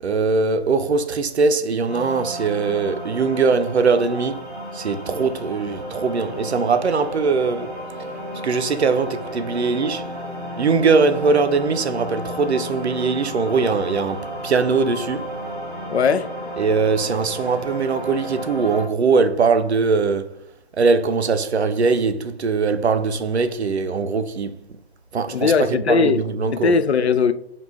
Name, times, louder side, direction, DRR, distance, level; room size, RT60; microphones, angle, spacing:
voice 1, 0.0-4.4 4.7-7.7 8.4-10.0 10.6-15.3 16.6-20.4 20.8-24.7 25.1-26.7, right 4 dB, 85° right, 0.6 m, -21 dB
sound 1, 1.9-18.8, equal, 5° left, 1.1 m, -33 dB
voice 2, 15.9-16.3 25.3-26.3 26.5-27.3, left 5 dB, 80° left, 0.5 m, -19 dB
5.2 x 2.4 x 3.5 m
hypercardioid pair, 170°, 32 cm